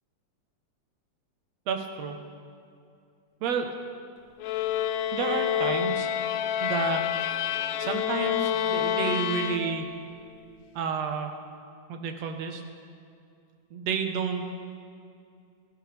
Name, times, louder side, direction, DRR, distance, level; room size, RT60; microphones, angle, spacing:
voice 1, 1.7-2.2 3.4-3.7 5.1-6.1 6.6-7.0 7.8-9.9 10.8-11.4 11.9-12.6 13.7-14.4, right 6 dB, 65° right, 5 dB, 2.2 m, -30 dB
sound 1, 4.4-10.1, left 10 dB, 75° left, 1.7 m, -28 dB
28.0 x 13.0 x 3.5 m, 2.4 s
omnidirectional pair, 3.6 m